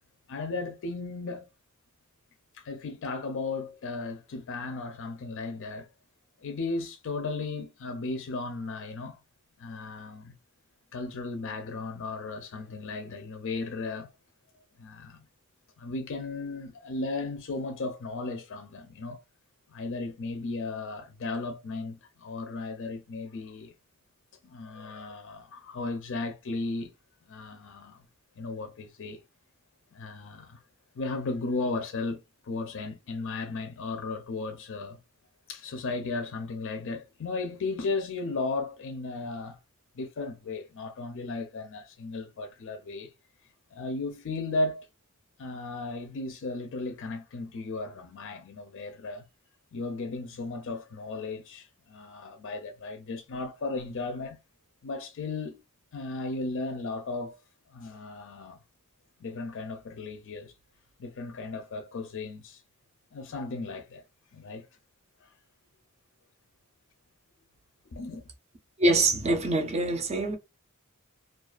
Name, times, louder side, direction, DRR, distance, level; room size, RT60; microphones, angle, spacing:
voice 1, 0.3-1.5 2.5-5.9 6.4-9.2 9.6-10.4 10.9-14.1 14.8-15.2 15.8-19.2 19.7-23.7 24.4-26.9 27.3-28.1 28.4-29.2 29.9-30.6 30.9-35.0 35.5-39.6 39.9-43.1 43.7-44.9 45.4-49.3 49.7-54.4 54.8-55.6 55.9-57.4 57.7-58.6 59.2-60.5 61.0-62.6 63.1-64.0 64.3-64.7 65.2-65.3 67.9-68.2, left 3 dB, 60° left, 0.4 m, -35 dB
voice 2, 68.8-70.3, right 2 dB, 30° right, 0.5 m, -24 dB
2.4 x 2.3 x 2.3 m
head